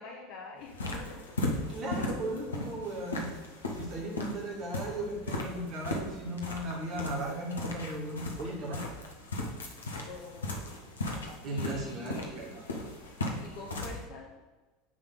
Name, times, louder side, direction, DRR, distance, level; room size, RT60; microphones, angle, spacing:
voice 1, 0.0-1.4 10.1-10.9 11.5-12.5 13.4-14.3, left 3 dB, 60° left, 0 dB, 1.2 m, -45 dB
sound 1, 0.6-14.0, left 2 dB, 80° left, 1.2 m, -37 dB
voice 2, 1.7-3.3 3.7-8.8 11.4-12.6, right 1 dB, 45° right, -3 dB, 2.3 m, -36 dB
9.7 x 3.7 x 6.5 m, 1.2 s
figure-of-eight pair, 75°, 0 cm